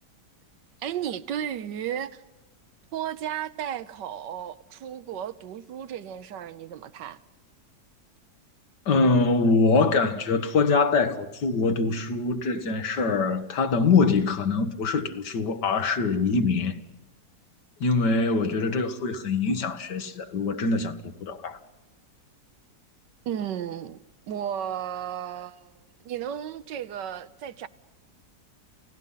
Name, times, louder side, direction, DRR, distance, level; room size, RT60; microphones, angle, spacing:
voice 1, 0.8-2.2 2.9-7.2 23.2-24.0 24.3-27.7, right 9 dB, 85° right, 1.5 m, -34 dB
voice 2, 8.9-16.8 17.8-21.6, left 4 dB, 75° left, 2.0 m, -24 dB
29.5 x 16.5 x 5.6 m
omnidirectional pair, 1.9 m